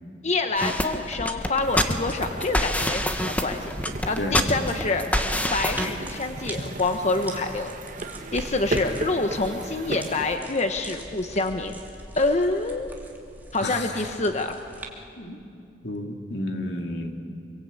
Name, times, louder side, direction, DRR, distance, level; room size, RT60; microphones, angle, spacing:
voice 1, 0.2-3.7 4.1-5.0 5.5-7.7 8.3-11.8 12.2-12.9 13.5-14.6, left 3 dB, 40° left, 5 dB, 1.1 m, -26 dB
sound 1, 0.6-5.9, left 1 dB, 10° left, 1.2 m, -26 dB
sound 2, 1.6-10.4, right 1 dB, 45° right, 1.7 m, -36 dB
sound 3, 5.7-14.9, right 1 dB, 10° right, 2.6 m, -42 dB
voice 2, 13.6-14.2 15.2-15.4 15.8-17.1, left 1 dB, 75° left, 3 dB, 2.7 m, -31 dB
26.0 x 23.5 x 8.4 m, 2.5 s
head